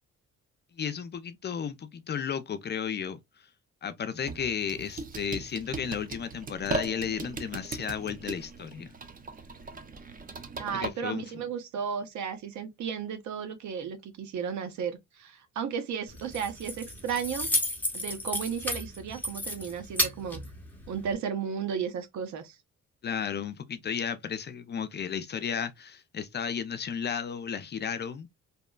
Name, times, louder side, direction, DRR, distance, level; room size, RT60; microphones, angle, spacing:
voice 1, 0.8-3.2 3.8-8.9 10.8-11.4 23.0-28.3, left 7 dB, 35° left, 0.4 m, -33 dB
sound 1, 4.2-10.9, right 3 dB, 30° right, 0.4 m, -38 dB
voice 2, 10.6-17.5 17.9-20.4 20.9-22.6, right 7 dB, 70° right, 0.7 m, -34 dB
Keys jangling, 16.1-21.1, left 1 dB, 5° left, 0.7 m, -33 dB
2.8 x 2.1 x 2.2 m
cardioid pair, 90°, 30 cm